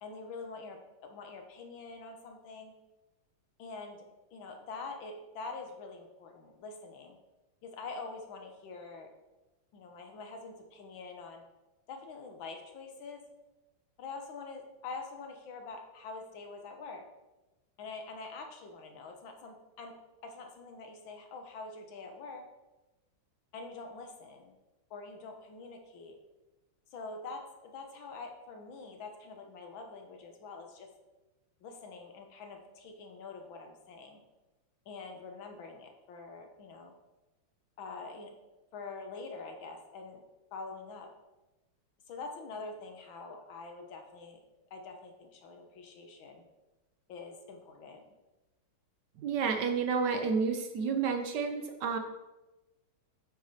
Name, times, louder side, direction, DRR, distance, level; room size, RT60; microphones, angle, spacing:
voice 1, 0.0-2.7 3.6-4.1 4.3-7.2 7.6-9.1 9.7-11.4 11.9-13.2 14.0-17.0 17.8-20.0 20.2-22.4 23.5-24.5 24.9-26.2 26.9-30.9 31.6-34.2 34.9-36.9 37.8-38.3 38.7-40.2 40.5-41.1 42.1-44.4 44.7-46.4 47.1-48.0, left 4 dB, 75° left, 3 dB, 1.8 m, -45 dB
voice 2, 49.2-52.0, right 5 dB, 65° right, 5 dB, 1.2 m, -30 dB
8.8 x 4.7 x 4.1 m, 1.1 s
omnidirectional pair, 2.2 m